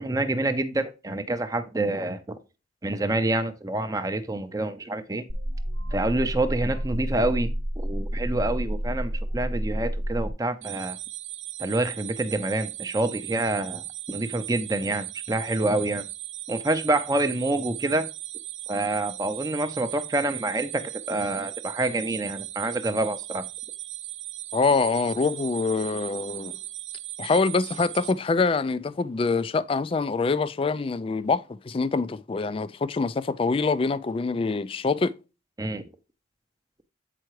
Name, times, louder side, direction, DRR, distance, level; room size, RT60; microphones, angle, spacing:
voice 1, 0.0-2.4 2.8-5.2 5.9-7.5 7.8-11.0 11.6-16.0 16.5-18.1 18.7-23.4 35.6-35.8, right 2 dB, 20° right, 0.6 m, -27 dB
sound 1, 5.3-10.3, equal, 65° right, 0.9 m, -29 dB
sound 2, 10.6-28.1, right 16 dB, 85° right, 0.6 m, -38 dB
voice 2, 24.5-26.6 27.2-35.1, left 4 dB, 30° left, 0.3 m, -25 dB
7.7 x 4.6 x 3.1 m
head